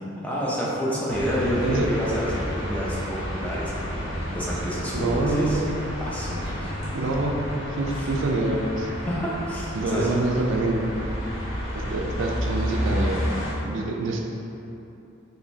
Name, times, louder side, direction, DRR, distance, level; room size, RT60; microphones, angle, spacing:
voice 1, 0.2-5.6 6.1-6.7 7.9-8.1 9.1-10.1, equal, 5° left, -7 dB, 0.5 m, -29 dB
Gardening next to street, 1.1-13.5, equal, 90° left, 1.1 m, -31 dB
voice 2, 1.5-1.9 4.9-5.7 6.9-8.9 9.7-10.9 11.7-13.3 13.6-14.2, right 2 dB, 70° right, 1 dB, 0.4 m, -26 dB
4.9 x 3.1 x 2.7 m, 2.9 s
head